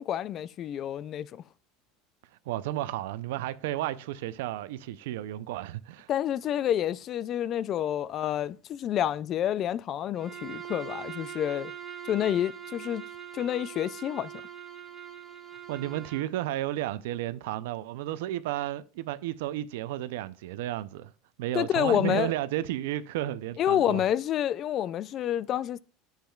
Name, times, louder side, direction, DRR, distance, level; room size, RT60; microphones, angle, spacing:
voice 1, 0.0-1.4 6.1-11.7 12.1-13.0 13.3-14.3 21.5-22.3 23.6-25.8, left 11 dB, 40° left, 0.3 m, -28 dB
voice 2, 2.5-6.1 15.7-21.1 21.4-24.0, right 14 dB, 85° right, 0.5 m, -32 dB
Bowed string instrument, 10.1-16.3, right 9 dB, 20° right, 1.5 m, -42 dB
10.5 x 7.3 x 2.3 m
supercardioid pair, 140°, 0 cm